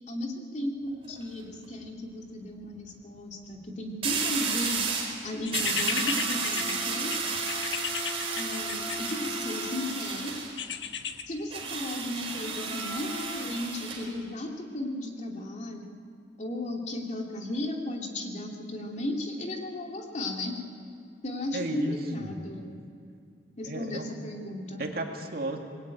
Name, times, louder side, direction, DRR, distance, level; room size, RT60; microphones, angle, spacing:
voice 1, 0.1-4.8 5.2-7.1 8.4-10.3 11.3-15.9 16.4-20.6 21.2-22.7 23.6-24.9, left 1 dB, 40° left, 1 dB, 2.8 m, -35 dB
sound 1, 0.9-1.2 4.0-5.2 5.5-10.5 11.5-14.1, right 4 dB, 30° right, 4.4 m, -32 dB
sound 2, 5.5-9.6 10.6-11.2, left 7 dB, 70° left, 1.4 m, -34 dB
voice 2, 21.5-22.3 23.6-24.1 24.8-25.6, right 2 dB, 55° right, 2 dB, 2.5 m, -34 dB
26.0 x 21.0 x 9.2 m, 2.4 s
head